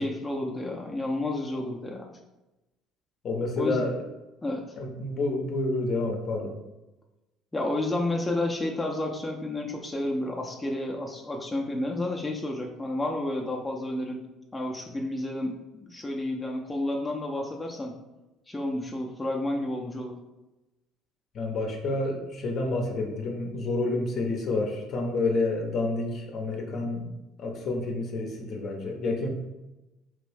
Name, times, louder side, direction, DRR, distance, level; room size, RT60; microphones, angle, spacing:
voice 1, 0.0-2.1 3.6-3.9 4.4-4.6 7.5-14.2 14.5-17.9 18.5-20.1, left 1 dB, 15° left, 0 dB, 0.6 m, -31 dB
voice 2, 3.2-4.0 4.8-6.6 21.3-27.1 27.4-29.3, left 2 dB, 55° left, 1 dB, 0.7 m, -29 dB
3.1 x 2.6 x 3.3 m, 1.0 s
hypercardioid pair, 65°, 0 cm